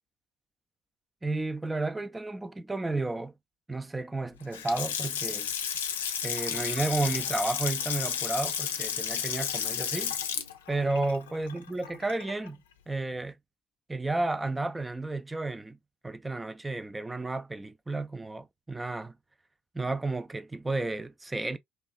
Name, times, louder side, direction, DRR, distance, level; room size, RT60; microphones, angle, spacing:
voice 1, 1.2-3.3 3.7-5.5 6.2-10.1 10.7-12.6 12.9-13.3 13.9-15.8 16.0-19.1 19.7-21.6, right 2 dB, 15° right, 0.4 m, -32 dB
Water tap faucet / Sink (filling or washing) / Splash splatter, 4.4-12.5, left 8 dB, 80° left, 0.4 m, -32 dB
3.3 x 2.5 x 2.3 m
figure-of-eight pair, 55°, 0 cm